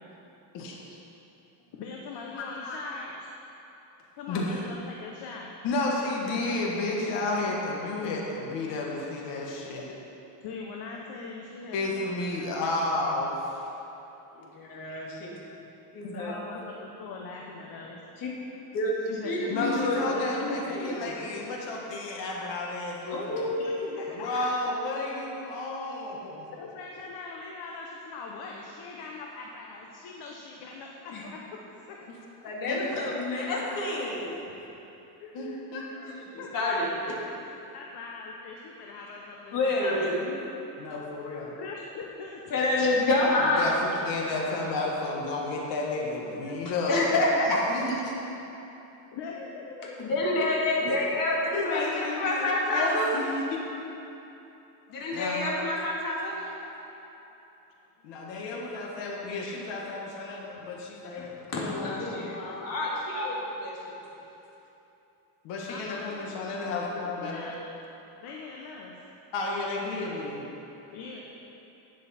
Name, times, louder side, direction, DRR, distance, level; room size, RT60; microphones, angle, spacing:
voice 1, 1.6-3.2 4.2-5.6 6.0-6.3 10.4-13.1 15.5-15.7 16.0-18.0 19.1-21.2 23.6-24.8 26.5-31.4 31.9-32.0 32.4-32.5 35.2-36.5 37.7-40.2 41.6-42.4 49.1-50.4 65.7-67.6 68.2-69.0 70.9-71.2, left 4 dB, 65° left, -1 dB, 1.1 m, -42 dB
voice 2, 2.3-2.8 4.3-4.5 5.6-9.8 11.7-13.6 19.5-23.5 24.2-26.5 32.7-33.0 35.3-35.8 40.8-41.6 43.6-43.8 44.1-47.1 47.7-48.2 50.9-51.0 51.5-53.6 55.1-55.4 58.0-62.3 65.4-67.5 69.3-70.5, left 2 dB, 85° left, -2 dB, 1.6 m, -32 dB
voice 3, 14.3-15.3 15.9-16.3 18.2-18.3 18.7-20.0 20.4-21.1 23.1-23.7 31.1-31.2 32.4-34.5 36.3-37.2 39.5-40.4 42.5-43.9 46.4-47.6 49.7-53.1 54.9-56.9 61.5-64.0 70.9-71.0, left 2 dB, 50° left, -4 dB, 2.3 m, -28 dB
11.5 x 9.4 x 4.4 m, 2.9 s
cardioid pair, 160°, 42 cm